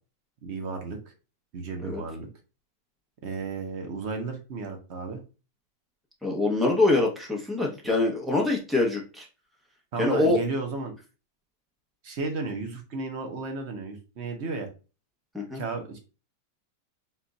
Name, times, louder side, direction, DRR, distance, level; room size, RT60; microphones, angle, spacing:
voice 1, 0.4-1.0 1.5-2.3 3.2-5.2 9.9-10.9 12.0-14.7 15.5-16.0, right 3 dB, 50° right, 4 dB, 0.9 m, -33 dB
voice 2, 6.2-9.3 10.0-10.4 15.3-15.6, left 2 dB, ahead, -1 dB, 0.3 m, -24 dB
4.3 x 2.4 x 3.9 m, 0.33 s
omnidirectional pair, 1.9 m